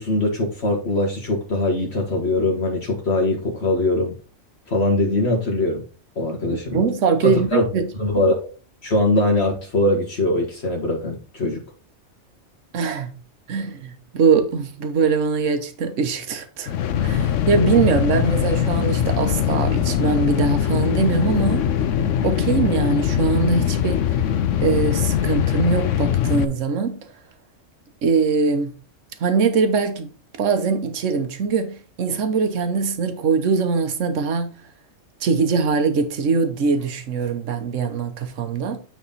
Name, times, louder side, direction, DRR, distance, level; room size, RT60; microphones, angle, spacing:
voice 1, 0.0-4.1 4.7-5.8 6.1-6.8 7.2-7.6 8.0-8.4 8.8-11.6, left 2 dB, 55° left, 1.7 m, -21 dB
voice 2, 6.5-7.9 12.7-13.1 13.5-16.7 17.0-21.7 22.2-24.2 24.6-27.1 28.0-28.7 29.2-30.1 30.4-34.5 35.2-38.8, right 5 dB, 75° right, 1.3 m, -22 dB
sound 1, 16.7-26.5, left 9 dB, 75° left, 1.0 m, -21 dB
9.3 x 3.7 x 4.0 m
omnidirectional pair, 1.3 m